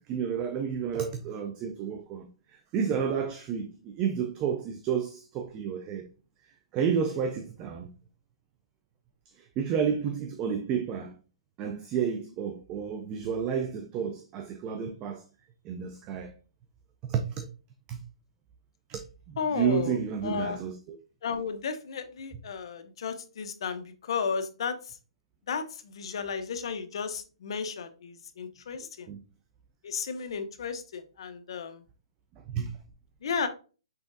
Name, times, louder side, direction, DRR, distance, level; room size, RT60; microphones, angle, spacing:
voice 1, 0.1-2.3 2.7-6.1 6.7-7.9 9.4-11.1 11.6-15.2 15.6-16.3 17.0-17.5 17.9-18.0 18.9-19.0 19.3-21.0 29.1-29.2 32.5-32.7, right 7 dB, 20° right, 0.4 m, -31 dB
voice 2, 19.4-20.0 20.2-20.6 21.2-24.7 25.5-29.1 29.8-31.8 33.2-33.5, left 6 dB, 55° left, 0.7 m, -33 dB
5.6 x 3.5 x 2.6 m
hypercardioid pair, 165°, 3 cm